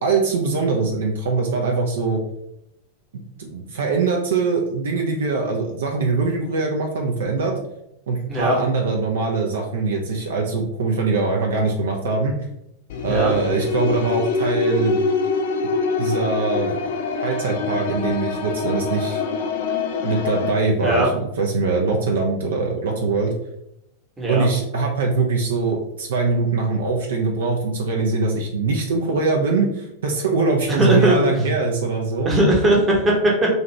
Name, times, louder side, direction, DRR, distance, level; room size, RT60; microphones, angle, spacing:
voice 1, 0.0-2.2 3.1-7.6 8.1-12.3 13.0-15.0 16.0-16.8 17.2-19.2 20.0-23.3 24.3-32.3, right 4 dB, 65° right, 1 dB, 0.4 m, -22 dB
sound 1, 12.9-20.5, left 4 dB, 55° left, 0.3 m, -24 dB
voice 2, 30.8-31.2 32.2-33.5, right 1 dB, 15° right, -2 dB, 0.9 m, -18 dB
2.7 x 2.4 x 3.0 m, 0.82 s
figure-of-eight pair, 90°, 0 cm